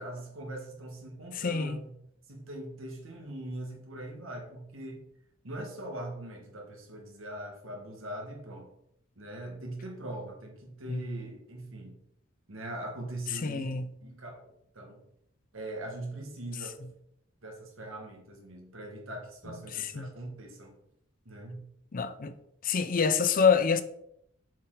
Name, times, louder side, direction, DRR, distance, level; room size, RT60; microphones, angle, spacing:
voice 1, 0.0-1.9 2.3-5.0 5.4-8.7 9.2-12.0 12.5-13.7 14.0-15.0 15.5-16.8 17.4-20.8 21.3-21.6, right 1 dB, 80° right, 1.8 m, -41 dB
voice 2, 1.3-1.8 10.9-11.0 13.4-13.9 20.0-20.1 21.9-22.3 22.6-23.8, left 5 dB, 45° left, 0.5 m, -26 dB
7.2 x 4.4 x 3.9 m
head